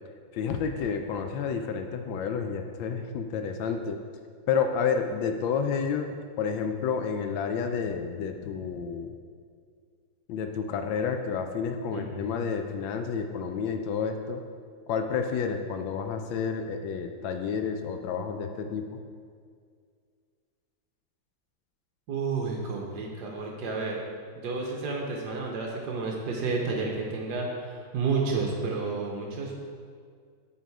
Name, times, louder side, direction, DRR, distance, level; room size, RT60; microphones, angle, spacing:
voice 1, 0.3-4.0 4.5-9.1 10.3-14.4 14.9-18.9, left 6 dB, 75° left, 6 dB, 1.3 m, -30 dB
voice 2, 11.9-12.5 22.1-24.0 24.3-29.6, right 4 dB, 60° right, -1 dB, 1.3 m, -31 dB
8.3 x 3.8 x 4.6 m, 2.1 s
omnidirectional pair, 2.2 m